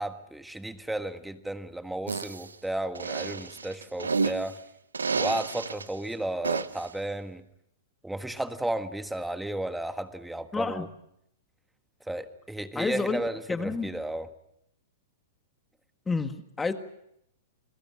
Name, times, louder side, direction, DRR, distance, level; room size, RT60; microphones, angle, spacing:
voice 1, 0.0-4.6 5.1-7.4 8.0-10.9 12.1-14.3, right 1 dB, 5° right, 10 dB, 1.6 m, -33 dB
sound 1, 2.1-2.5 2.9-4.5 4.9-5.8 6.4-6.9, right 4 dB, 85° right, 0.9 m, -30 dB
voice 2, 10.5-10.9 12.7-13.2 13.5-13.9 16.1-16.7, left 4 dB, 10° left, 9 dB, 1.7 m, -29 dB
29.5 x 21.5 x 6.3 m, 0.76 s
hypercardioid pair, 110°, 0 cm